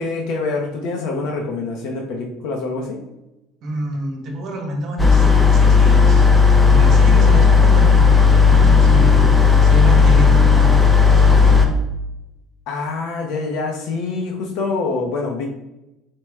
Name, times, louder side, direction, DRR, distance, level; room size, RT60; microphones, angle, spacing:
voice 1, 0.0-3.0 7.1-7.5 7.8-8.0 12.7-15.5, left 3 dB, 60° left, 1 dB, 0.6 m, -26 dB
voice 2, 3.6-6.3 6.6-11.7, right 1 dB, 40° right, 1 dB, 1.0 m, -27 dB
sound 1, 5.0-11.7, left 5 dB, 5° left, 0.4 m, -12 dB
4.4 x 2.1 x 4.6 m, 0.95 s
cardioid pair, 170°, 0 cm